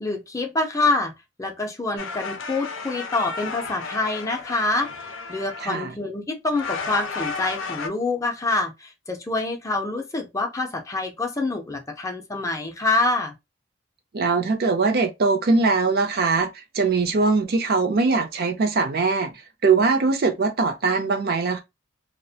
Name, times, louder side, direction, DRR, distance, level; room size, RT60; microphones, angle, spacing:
voice 1, 0.0-1.1 1.4-4.9 5.3-13.3, left 2 dB, 15° left, 0.5 m, -26 dB
sound 1, 2.0-5.9 6.5-7.9, left 4 dB, 75° left, 0.5 m, -33 dB
voice 2, 5.6-5.9 14.1-19.3 19.6-21.6, right 4 dB, 50° right, 0.5 m, -21 dB
2.4 x 2.1 x 2.7 m
head